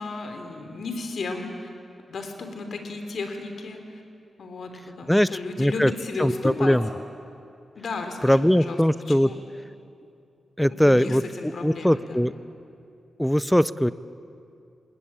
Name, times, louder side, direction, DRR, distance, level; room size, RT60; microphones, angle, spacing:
voice 1, 0.0-1.7 2.1-4.0 4.4-6.8 7.8-8.8 9.1-9.4 10.7-12.3, left 3 dB, 70° left, 5 dB, 3.5 m, -34 dB
voice 2, 5.6-5.9 6.2-6.9 8.2-9.3 10.6-11.2 11.6-12.3 13.2-13.9, equal, 5° left, 16 dB, 0.6 m, -20 dB
28.0 x 20.0 x 8.9 m, 2.5 s
wide cardioid pair, 105°, 0 cm